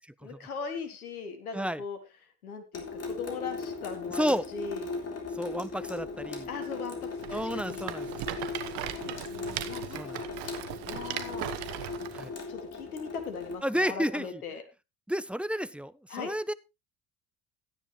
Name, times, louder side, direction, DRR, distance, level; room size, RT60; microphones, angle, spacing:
voice 1, 0.2-2.0 2.4-4.2 4.5-4.9 6.5-7.8 8.7-10.2 10.9-11.5 12.5-14.6 16.1-16.3, left 5 dB, 90° left, 7 dB, 1.6 m, -39 dB
Water tap faucet / Sink (filling or washing) / Drip, 2.7-13.6, left 4 dB, 35° left, 3.7 m, -38 dB
voice 2, 4.1-4.5 5.3-6.5 7.3-8.1 9.9-10.2 12.1-12.3 13.6-14.4 15.1-16.5, equal, 5° right, 16 dB, 0.5 m, -31 dB
Rattle, 7.2-12.3, right 13 dB, 65° right, 1.2 m, -38 dB
13.5 x 9.8 x 3.2 m, 0.25 s
hypercardioid pair, 65°, 43 cm